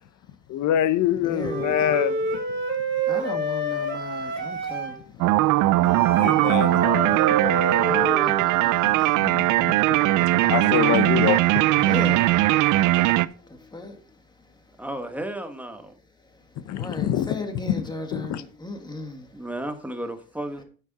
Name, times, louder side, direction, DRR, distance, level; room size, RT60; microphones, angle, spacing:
voice 1, 0.5-2.2 6.2-7.1 7.7-7.8 8.8-8.9 9.2-11.9 16.7-17.3 18.1-18.4, left 11 dB, 75° left, 0.8 m, -26 dB
voice 2, 1.2-1.9 3.0-9.8 10.1-10.5 11.8-14.8 16.1-19.5, left 2 dB, 15° left, 1.6 m, -38 dB
Wind instrument woodwind instrument, 1.4-5.0 5.8-8.4, right 3 dB, 35° right, 2.8 m, -28 dB
sound 1, 5.2-13.3, right 16 dB, 80° right, 0.5 m, -20 dB
voice 3, 14.8-15.9 19.3-20.6, right 1 dB, 5° right, 1.2 m, -33 dB
9.4 x 7.7 x 4.0 m
cardioid pair, 135°, 29 cm